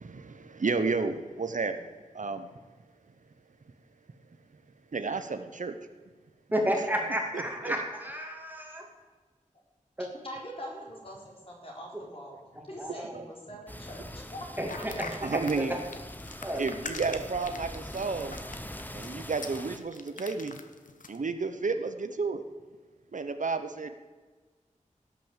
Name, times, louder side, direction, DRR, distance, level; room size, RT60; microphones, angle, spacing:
voice 1, 0.0-2.5 4.9-5.7 7.3-7.7 13.1-13.2 15.2-15.7 16.6-18.4 18.9-20.6 21.1-22.4 23.1-23.9, right 4 dB, 70° right, 9 dB, 0.9 m, -32 dB
voice 2, 6.5-8.9 10.0-10.1 12.8-13.2 14.6-14.9 15.3-15.8 16.4-16.7, equal, 15° right, 1 dB, 2.4 m, -31 dB
voice 3, 10.2-11.4 11.6-12.4 12.7-14.8, equal, 45° left, -2 dB, 4.1 m, -43 dB
sound 1, 13.7-19.8, left 1 dB, 15° left, 0.9 m, -43 dB
sound 2, 14.7-21.2, left 4 dB, 85° left, 1.1 m, -43 dB
17.0 x 6.3 x 7.3 m, 1.4 s
wide cardioid pair, 80°, 13 cm